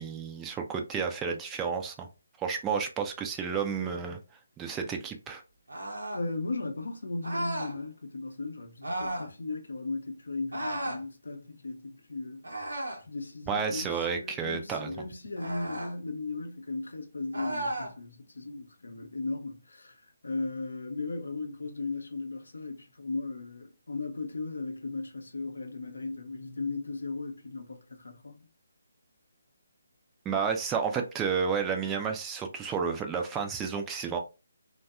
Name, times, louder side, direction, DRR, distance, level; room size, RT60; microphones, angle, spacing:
voice 1, 0.0-2.1 2.4-4.2 4.6-5.4 13.5-14.9 30.3-34.2, right 6 dB, 10° right, 0.3 m, -31 dB
sound 1, 5.7-6.3 7.2-7.8 8.8-9.3 10.5-11.0 12.4-13.1 15.4-15.9 17.3-17.9, right 1 dB, 70° right, 0.7 m, -34 dB
voice 2, 6.1-12.6 13.1-28.4, left 3 dB, 65° left, 0.6 m, -37 dB
2.6 x 2.2 x 2.3 m
figure-of-eight pair, 145°, 0 cm